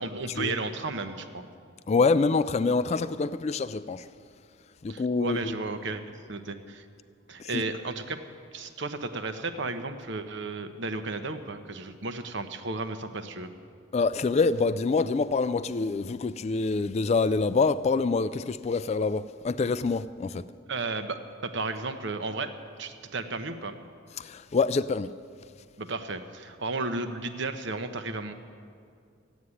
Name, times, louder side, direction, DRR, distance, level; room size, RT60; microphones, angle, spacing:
voice 1, 0.0-1.5 4.9-6.9 7.3-8.2 8.5-13.5 20.7-22.5 22.8-23.8 25.8-28.3, right 3 dB, 60° right, 1.0 m, -34 dB
voice 2, 1.9-4.0 4.8-5.6 7.4-7.6 13.9-20.4 24.2-25.1, left 4 dB, 35° left, 0.3 m, -26 dB
14.5 x 9.4 x 9.8 m
head